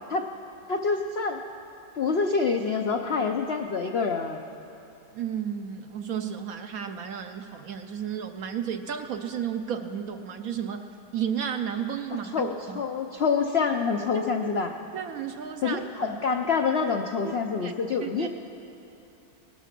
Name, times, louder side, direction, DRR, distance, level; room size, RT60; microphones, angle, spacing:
voice 1, 0.7-1.4 2.0-4.4 12.3-14.7 15.6-18.3, left 5 dB, 75° left, 4 dB, 0.5 m, -26 dB
voice 2, 5.1-10.9 11.1-12.8 14.1-14.3 14.9-16.1 17.2-17.7 18.0-18.3, right 8 dB, 65° right, 7 dB, 0.9 m, -33 dB
19.0 x 12.0 x 6.0 m, 3.0 s
omnidirectional pair, 1.9 m